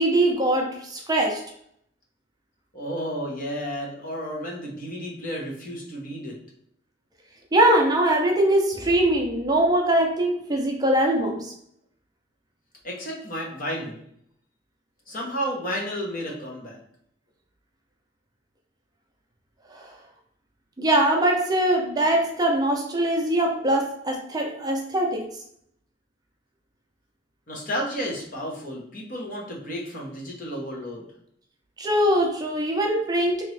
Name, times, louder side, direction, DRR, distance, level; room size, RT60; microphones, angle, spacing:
voice 1, 0.0-1.4 7.5-11.5 19.7-19.9 20.8-25.3 31.8-33.4, right 1 dB, 20° right, 1 dB, 0.5 m, -22 dB
voice 2, 2.7-6.4 12.8-14.0 15.1-16.8 27.5-31.0, equal, 45° left, -1 dB, 1.1 m, -32 dB
3.4 x 3.0 x 3.2 m, 0.70 s
head